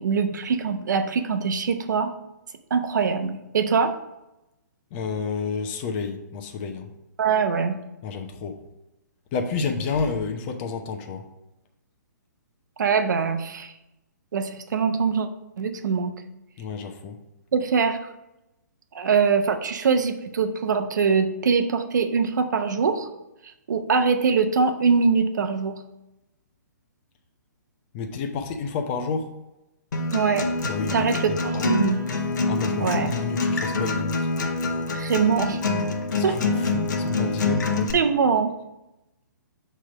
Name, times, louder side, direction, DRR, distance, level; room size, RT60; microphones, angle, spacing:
voice 1, 0.0-2.1 2.7-4.0 7.2-7.8 12.8-13.8 14.3-15.3 15.6-16.1 17.5-18.1 18.9-23.1 23.4-25.8 30.1-30.5 30.9-32.0 32.8-33.1 34.9-35.6 36.2-36.4 37.9-38.5, right 5 dB, 70° right, 8 dB, 0.7 m, -23 dB
voice 2, 4.9-6.9 8.0-8.6 9.3-11.2 16.6-17.2 27.9-29.3 30.7-31.7 32.5-34.3 36.1-37.7, left 5 dB, 35° left, 5 dB, 0.9 m, -30 dB
Acoustic guitar, 29.9-37.9, left 3 dB, 70° left, 1.0 m, -26 dB
6.2 x 3.4 x 5.9 m, 0.93 s
hypercardioid pair, 135°, 10 cm